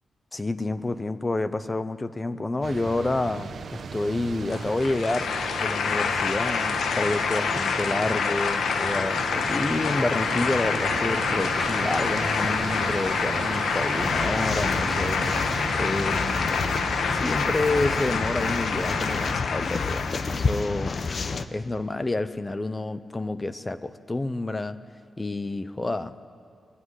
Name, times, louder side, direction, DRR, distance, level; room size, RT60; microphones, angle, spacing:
voice 1, 0.3-15.3 15.7-16.6 17.1-21.0 21.5-24.8 25.2-26.2, left 2 dB, 15° left, 12 dB, 0.8 m, -29 dB
sound 1, 2.6-19.3, right 5 dB, 50° right, 1.0 m, -36 dB
sound 2, 4.5-20.5, left 5 dB, 85° left, 1.4 m, -27 dB
sound 3, 14.0-21.5, left 4 dB, 40° left, 0.9 m, -30 dB
21.5 x 21.0 x 10.0 m, 2.2 s
wide cardioid pair, 170°, 0 cm